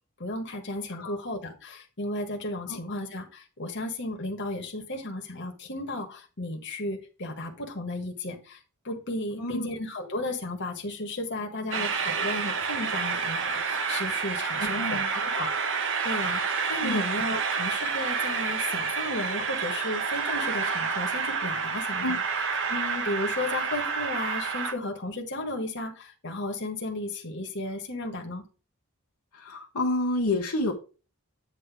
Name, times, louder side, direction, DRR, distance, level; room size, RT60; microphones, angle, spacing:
voice 1, 0.2-8.6 8.8-15.5 16.0-22.2 22.7-28.4, left 2 dB, 55° left, 3 dB, 1.6 m, -34 dB
Train, 11.7-24.7, right 5 dB, 60° right, 1.0 m, -29 dB
voice 2, 14.6-15.1 16.8-17.1 22.0-22.2 29.3-30.7, left 2 dB, 80° left, 0 dB, 1.4 m, -29 dB
8.8 x 3.1 x 6.0 m, 0.33 s
head